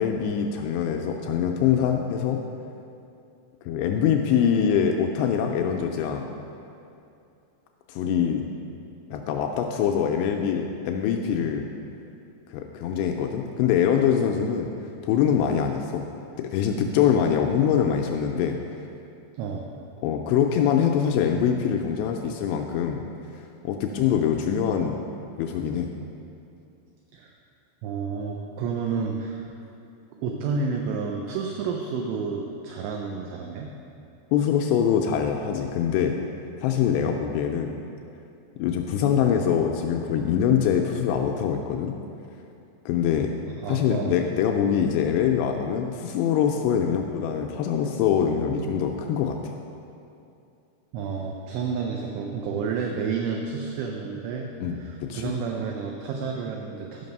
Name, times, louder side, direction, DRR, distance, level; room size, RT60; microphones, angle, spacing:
voice 1, 0.0-2.4 3.7-6.3 7.9-8.4 9.1-11.7 12.5-14.7 15.0-16.1 16.4-18.8 20.0-23.0 23.6-25.0 25.4-25.9 34.3-36.1 36.6-37.7 38.6-42.0 42.9-43.3 43.7-49.5 54.6-54.8 55.1-55.3, left 8 dB, 85° left, 3 dB, 2.5 m, -24 dB
voice 2, 19.4-19.7 27.1-27.3 27.8-29.5 30.2-33.7 36.9-37.2 43.6-44.2 50.9-54.5 54.8-57.1, right 5 dB, 80° right, 1 dB, 2.7 m, -30 dB
11.5 x 5.9 x 5.3 m, 2.6 s
omnidirectional pair, 5.4 m